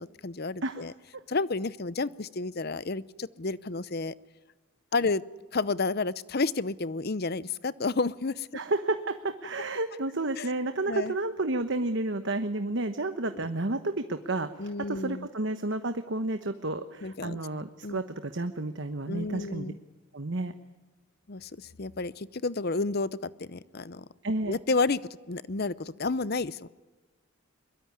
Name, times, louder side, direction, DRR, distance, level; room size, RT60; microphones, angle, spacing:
voice 1, 0.0-0.9 1.3-4.1 4.9-5.2 5.5-8.5 10.4-10.5 10.9-11.1 13.3-13.5 14.6-15.3 17.0-17.4 17.8-18.0 19.1-19.8 21.3-24.1 24.4-25.0 25.3-26.7, left 3 dB, 45° left, 18 dB, 0.7 m, -31 dB
voice 2, 0.6-1.2 8.5-19.7 20.1-20.5 24.2-24.6, right 2 dB, 55° right, 9 dB, 1.1 m, -31 dB
22.5 x 22.5 x 9.7 m, 1.2 s
head